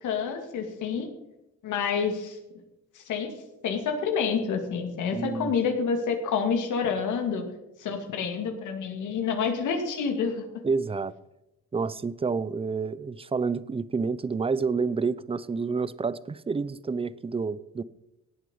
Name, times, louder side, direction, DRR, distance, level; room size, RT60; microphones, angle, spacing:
voice 1, 0.0-1.1 1.6-2.4 3.0-3.3 3.6-7.4 7.8-10.4, left 6 dB, 80° left, 2.2 m, -28 dB
voice 2, 5.1-5.5 10.6-11.1 11.7-17.8, right 4 dB, 20° right, 0.6 m, -29 dB
17.5 x 8.1 x 5.5 m
cardioid pair, 90°, 30 cm